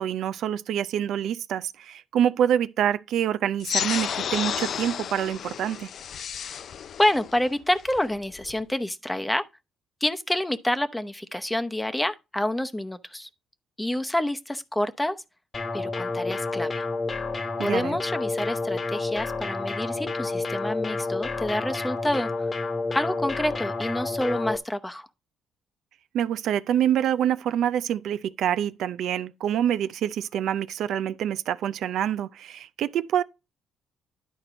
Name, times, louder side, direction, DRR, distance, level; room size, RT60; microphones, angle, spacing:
voice 1, 0.0-5.9 17.6-18.0 26.1-33.2, right 10 dB, 75° right, 0.4 m, -26 dB
sound 1, 3.6-8.6, left 8 dB, 60° left, 0.4 m, -32 dB
voice 2, 7.0-9.4 10.0-13.3 13.8-15.2 15.7-16.8 17.6-22.5 22.9-25.1, left 1 dB, 10° left, 0.8 m, -28 dB
sound 2, 15.5-24.6, left 3 dB, 35° left, 1.1 m, -30 dB
10.5 x 4.4 x 5.0 m
cardioid pair, 90°, 0 cm